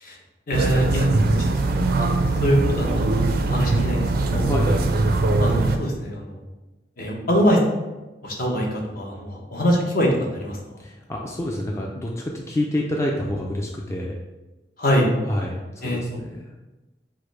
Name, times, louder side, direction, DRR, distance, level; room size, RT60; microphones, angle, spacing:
voice 1, 0.5-1.2 1.7-4.5 5.4-6.4 7.0-7.6 8.2-10.6 14.8-15.1 15.8-16.2, equal, 55° left, -1 dB, 0.9 m, -24 dB
sound 1, 0.5-5.8, right 2 dB, 60° right, 0.4 m, -21 dB
voice 2, 4.5-5.0 10.8-14.2 15.2-16.5, left 1 dB, 15° left, -1 dB, 0.3 m, -27 dB
4.8 x 2.1 x 4.6 m, 1.1 s
head